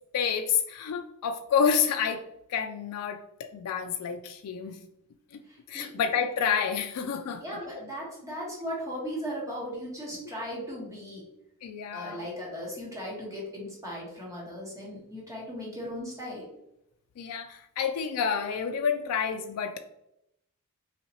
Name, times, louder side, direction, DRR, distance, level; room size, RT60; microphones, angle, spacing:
voice 1, 0.1-2.2 2.5-4.8 5.3-5.4 5.7-7.4 11.6-12.2 17.2-19.8, left 7 dB, 85° left, 6 dB, 0.3 m, -29 dB
voice 2, 5.5-6.0 7.4-11.2 11.9-16.5, equal, 15° right, -5 dB, 1.4 m, -37 dB
4.0 x 2.8 x 2.9 m, 0.81 s
head